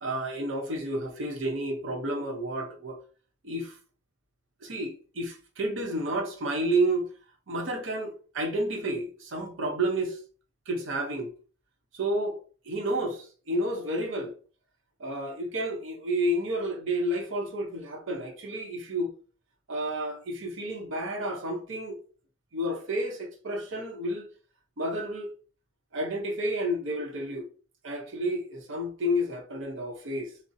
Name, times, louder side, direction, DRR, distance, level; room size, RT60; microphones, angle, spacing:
voice 1, 0.0-3.0 3.4-3.8 4.6-7.1 7.5-10.2 10.7-11.3 11.9-12.4 12.6-14.3 15.0-19.1 19.7-22.0 22.5-24.3 24.8-25.3 25.9-27.5 27.8-30.3, right 1 dB, 80° right, 0.7 m, -30 dB
2.5 x 2.0 x 3.9 m
head